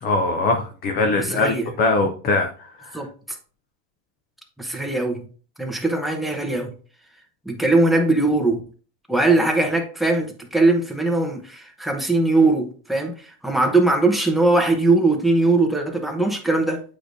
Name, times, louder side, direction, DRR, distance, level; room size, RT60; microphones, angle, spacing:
voice 1, 0.0-2.5 2.8-3.1, left 3 dB, 25° left, 0.3 m, -22 dB
voice 2, 1.2-1.7 2.9-3.1 4.6-5.2 5.6-6.7 7.5-8.6 9.1-13.1 13.4-16.8, right 2 dB, ahead, 0.8 m, -20 dB
8.4 x 5.0 x 2.6 m
cardioid pair, 155°, 46 cm